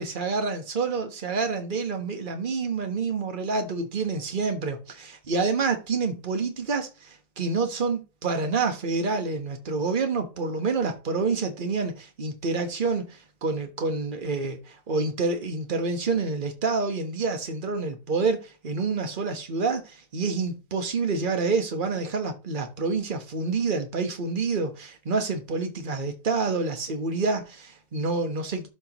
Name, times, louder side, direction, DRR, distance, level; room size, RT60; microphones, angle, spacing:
voice 1, 0.0-28.7, right 4 dB, 30° right, 1.1 m, -28 dB
12.5 x 4.6 x 3.0 m
omnidirectional pair, 2.0 m